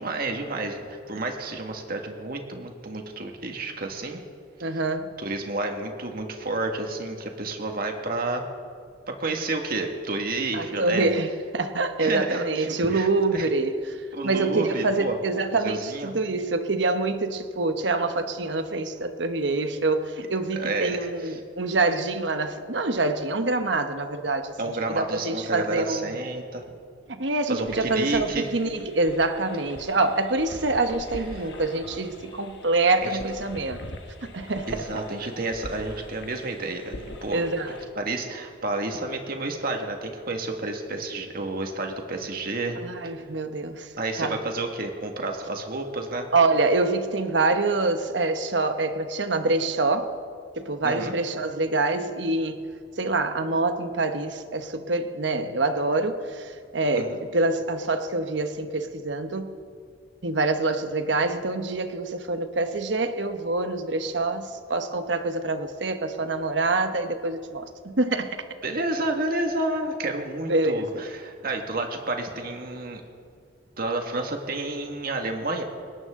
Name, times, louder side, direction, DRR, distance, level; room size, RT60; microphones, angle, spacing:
voice 1, 0.0-4.2 4.7-4.8 5.2-8.4 9.2-11.1 12.0-13.5 14.1-15.1 15.6-16.1 20.5-21.4 24.6-26.6 27.5-28.5 33.0-33.2 34.7-37.4 38.0-42.8 44.0-46.3 50.8-51.1 56.9-57.2 68.6-73.0 73.8-75.6, right 2 dB, 55° right, 3 dB, 1.9 m, -30 dB
voice 2, 4.6-5.1 10.5-14.0 14.2-24.5 24.9-26.2 27.1-33.8 34.2-34.9 37.3-37.8 42.8-43.9 44.2-44.4 46.3-50.1 50.6-52.6 53.0-59.6 60.2-68.4 70.5-71.0, right 3 dB, 75° right, 8 dB, 1.1 m, -26 dB
sound 1, 27.7-37.9, left 1 dB, 65° left, 1.4 m, -42 dB
20.5 x 18.5 x 3.8 m, 2.2 s
head